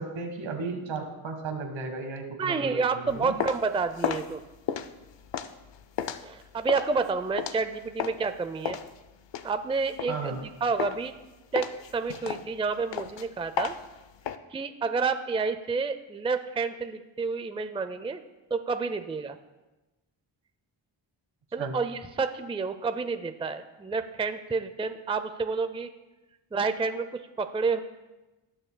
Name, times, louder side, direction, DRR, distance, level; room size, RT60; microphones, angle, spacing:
voice 1, 0.0-3.4 10.1-10.4 21.6-21.8, right 4 dB, 75° right, 4 dB, 1.4 m, -35 dB
voice 2, 2.4-4.4 6.2-8.8 9.4-11.1 11.5-11.7 11.9-13.7 14.5-18.2 18.5-19.4 21.5-25.9 26.5-27.1 27.4-27.8, right 4 dB, 10° right, 10 dB, 0.4 m, -29 dB
sound 1, 3.1-8.3 8.7-10.5 10.8-11.2 11.6-14.4, left 8 dB, 65° left, 0.6 m, -34 dB
18.5 x 6.5 x 2.2 m, 1.1 s
cardioid pair, 65°, 47 cm